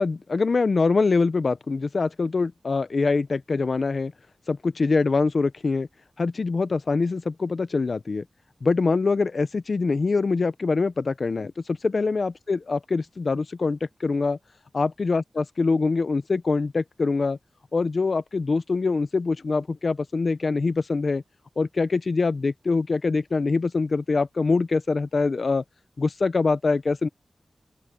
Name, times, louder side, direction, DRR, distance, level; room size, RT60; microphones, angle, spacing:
voice 1, 0.0-4.1 4.5-5.9 6.2-8.2 8.6-14.4 14.7-17.4 17.7-21.2 21.6-25.6 26.0-27.1, left 4 dB, 65° left, 0.7 m, -24 dB
open air
cardioid pair, 50°, 0 cm